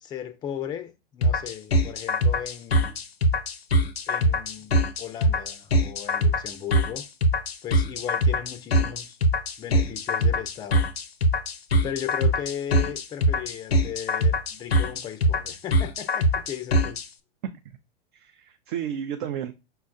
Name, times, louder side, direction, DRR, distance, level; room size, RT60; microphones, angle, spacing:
voice 1, 0.0-3.0 4.1-7.1 7.6-9.2 9.6-10.9 11.8-17.0, left 10 dB, 15° left, 0.4 m, -36 dB
sound 1, 1.2-17.1, equal, 85° left, 0.6 m, -23 dB
voice 2, 17.4-17.8 18.1-19.5, right 9 dB, 55° right, 0.5 m, -33 dB
5.5 x 2.2 x 2.5 m
figure-of-eight pair, 100°, 30 cm